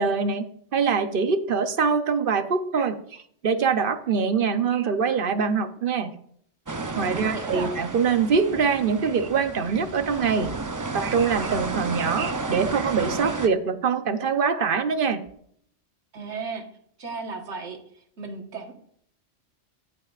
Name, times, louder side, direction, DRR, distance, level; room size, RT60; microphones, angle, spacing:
voice 1, 0.0-6.1 7.0-10.5 10.9-15.2, right 5 dB, 55° right, 10 dB, 0.9 m, -24 dB
sound 1, 6.7-13.5, right 3 dB, 25° right, 0.4 m, -32 dB
voice 2, 7.1-7.8 16.1-16.7 17.0-18.7, right 4 dB, 75° right, 4 dB, 1.7 m, -35 dB
14.5 x 9.0 x 2.4 m, 0.65 s
omnidirectional pair, 1.2 m